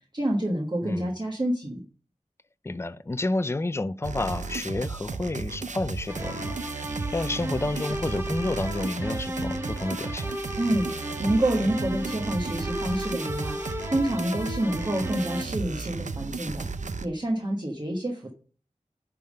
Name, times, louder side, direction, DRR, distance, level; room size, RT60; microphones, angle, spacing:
voice 1, 0.1-1.8 10.6-18.3, right 1 dB, 35° right, 1.3 m, -28 dB
voice 2, 2.7-6.6 7.1-10.3, left 2 dB, 20° left, 0.4 m, -30 dB
sound 1, 4.0-17.1, right 4 dB, 70° right, 0.6 m, -34 dB
sound 2, 6.1-15.4, equal, 20° right, 0.9 m, -35 dB
10.5 x 3.6 x 6.4 m
wide cardioid pair, 55°, 13 cm